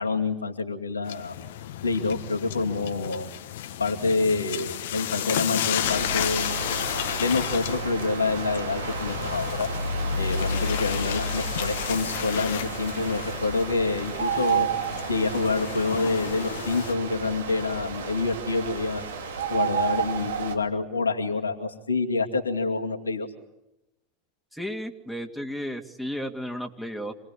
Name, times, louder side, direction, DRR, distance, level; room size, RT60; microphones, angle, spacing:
voice 1, 0.0-1.3 1.8-3.3 3.8-6.7 7.2-9.7 10.2-14.7 15.1-19.0 19.5-23.3, left 3 dB, 90° left, 2 dB, 2.5 m, -27 dB
sound 1, 1.0-16.9, left 11 dB, 65° left, 1.3 m, -33 dB
sound 2, 5.8-20.6, right 4 dB, 75° right, 2.7 m, -31 dB
voice 2, 24.5-27.1, equal, ahead, 4 dB, 2.7 m, -33 dB
27.5 x 20.0 x 8.6 m, 0.91 s
figure-of-eight pair, 85°, 0 cm